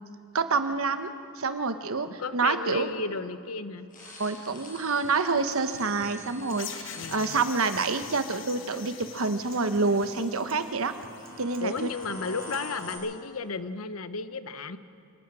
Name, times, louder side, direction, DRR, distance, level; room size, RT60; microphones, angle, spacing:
voice 1, 0.3-1.1 1.4-2.9 4.2-10.9 11.4-11.9, right 4 dB, 75° right, 9 dB, 1.1 m, -27 dB
voice 2, 2.0-3.9 6.9-7.4 10.1-10.2 11.6-14.8, left 4 dB, 85° left, 11 dB, 0.9 m, -34 dB
sound 1, 3.9-8.3 9.9-10.1 10.7-13.0, left 2 dB, 40° left, 6.7 m, -46 dB
Acoustic guitar, 5.0-13.0, right 1 dB, 45° right, 2.2 m, -51 dB
sound 2, 6.6-11.3, left 9 dB, 65° left, 1.2 m, -44 dB
27.5 x 18.0 x 6.2 m, 2.4 s
head